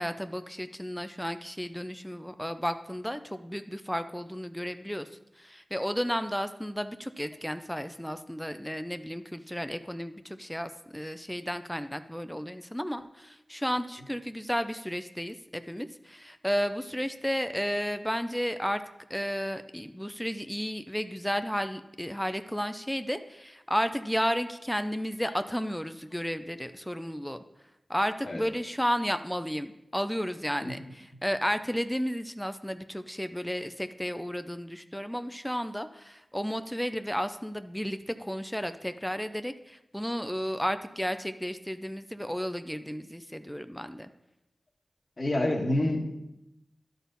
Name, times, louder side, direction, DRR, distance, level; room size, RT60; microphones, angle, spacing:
voice 1, 0.0-5.1 5.4-18.8 19.1-27.4 27.9-44.1, equal, 5° left, 10 dB, 0.5 m, -33 dB
voice 2, 45.2-46.0, left 1 dB, 55° left, -1 dB, 1.5 m, -27 dB
11.0 x 4.1 x 5.4 m, 0.89 s
cardioid pair, 40°, 0 cm